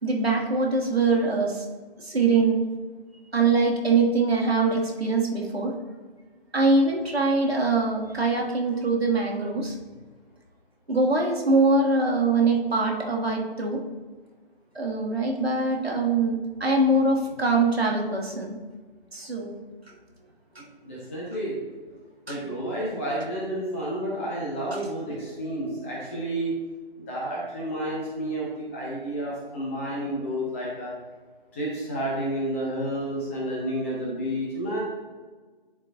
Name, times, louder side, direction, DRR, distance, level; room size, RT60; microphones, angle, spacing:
voice 1, 0.0-1.6 2.0-2.6 3.3-5.7 6.5-9.7 10.9-13.8 14.7-18.6 19.1-19.5 22.3-22.4 24.7-24.8, right 3 dB, 80° right, -1 dB, 1.7 m, -23 dB
voice 2, 20.8-21.5 22.3-26.5 27.1-30.9 31.5-34.8, right 1 dB, 15° left, -6 dB, 1.1 m, -30 dB
10.5 x 4.5 x 2.7 m, 1.4 s
figure-of-eight pair, 155°, 30 cm